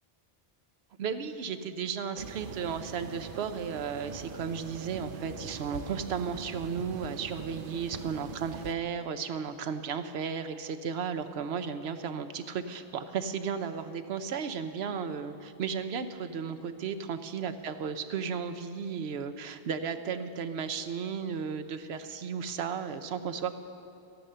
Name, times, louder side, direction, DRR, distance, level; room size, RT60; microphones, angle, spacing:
voice 1, 1.0-23.6, right 6 dB, 85° right, 9 dB, 1.0 m, -34 dB
sound 1, 2.2-8.7, right 6 dB, 60° right, 0.8 m, -42 dB
13.5 x 10.5 x 6.7 m, 2.6 s
omnidirectional pair, 1.0 m